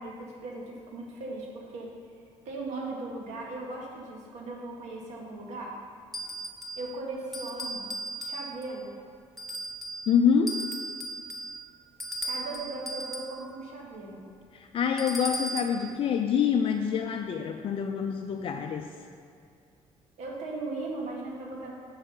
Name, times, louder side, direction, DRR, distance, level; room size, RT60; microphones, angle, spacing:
voice 1, 0.0-1.9 2.5-5.8 6.8-7.9 8.2-8.9 12.2-14.3 20.2-21.7, right 2 dB, 80° right, -1 dB, 1.7 m, -38 dB
sound 1, 6.1-6.9 7.3-8.8 9.4-10.1 10.5-13.4 15.0-15.8, right 1 dB, ahead, 0.9 m, -36 dB
voice 2, 10.1-10.6 14.5-18.9, left 7 dB, 50° left, 4 dB, 0.4 m, -26 dB
9.4 x 4.8 x 5.5 m, 2.2 s
cardioid pair, 125°, 12 cm